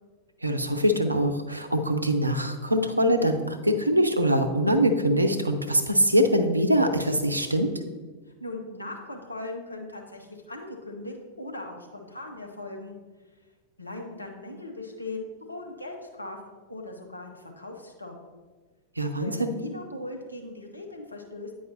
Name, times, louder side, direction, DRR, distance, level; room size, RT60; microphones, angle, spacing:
voice 1, 0.4-7.7 19.0-19.6, equal, 85° right, 7 dB, 0.6 m, -23 dB
voice 2, 8.4-13.0 13.8-18.1 19.2-21.5, left 2 dB, 85° left, 2 dB, 0.9 m, -39 dB
9.1 x 4.7 x 2.8 m, 1.3 s
figure-of-eight pair, 90°, 0 cm